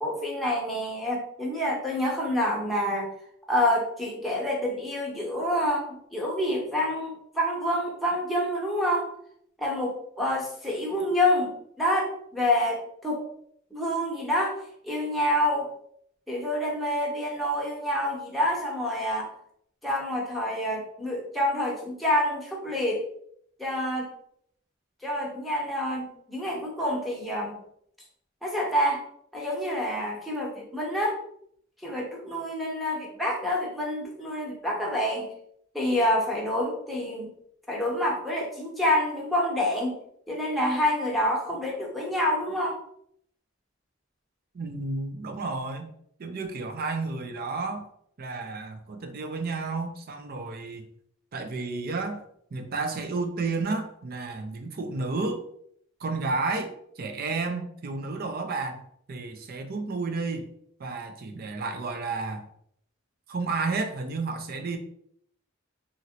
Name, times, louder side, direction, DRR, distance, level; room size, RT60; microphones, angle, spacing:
voice 1, 0.0-3.1 3.5-9.1 9.6-11.5 11.8-13.2 13.7-14.6 14.8-15.7 16.3-19.3 19.8-23.0 23.6-24.1 25.0-27.6 28.4-29.1 29.3-31.2 31.8-35.3 35.7-37.3 37.7-40.0 40.3-42.8, left 1 dB, ahead, -3 dB, 0.7 m, -27 dB
voice 2, 44.5-45.9 46.2-47.9 48.2-50.9 51.3-52.2 52.5-55.4 56.0-58.8 59.1-60.5 60.8-62.4 63.3-64.8, right 3 dB, 50° right, 6 dB, 0.4 m, -31 dB
3.0 x 2.6 x 2.8 m, 0.68 s
head